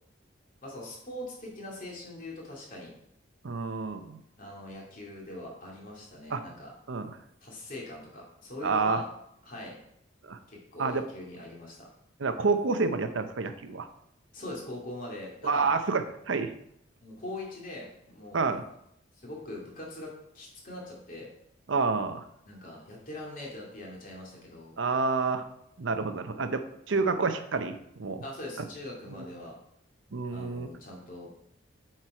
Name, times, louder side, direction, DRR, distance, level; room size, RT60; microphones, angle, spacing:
voice 1, 0.6-2.9 4.4-6.7 7.4-9.0 9.4-9.8 10.5-11.9 14.3-15.8 17.0-18.6 19.2-21.3 22.4-24.8 26.9-27.1 28.2-29.6 30.3-31.3, left 1 dB, 45° left, -3 dB, 2.4 m, -42 dB
voice 2, 3.4-4.2 6.3-6.4 6.9-7.2 8.6-9.0 10.2-10.4 10.8-11.1 12.2-13.9 15.4-16.5 18.3-18.6 21.7-22.2 24.8-25.5 25.8-28.2 29.2-29.3 30.1-30.7, right 4 dB, 75° right, 9 dB, 0.7 m, -29 dB
7.7 x 4.6 x 4.8 m, 0.73 s
head